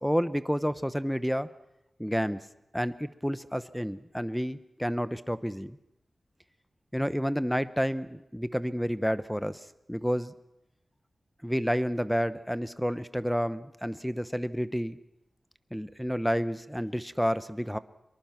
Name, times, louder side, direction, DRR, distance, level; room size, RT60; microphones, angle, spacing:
voice 1, 0.0-1.5 2.0-2.4 2.7-5.8 6.9-10.3 11.4-15.0 15.7-17.8, equal, ahead, 13 dB, 0.9 m, -30 dB
25.0 x 23.0 x 5.9 m, 0.87 s
wide cardioid pair, 90°, 0 cm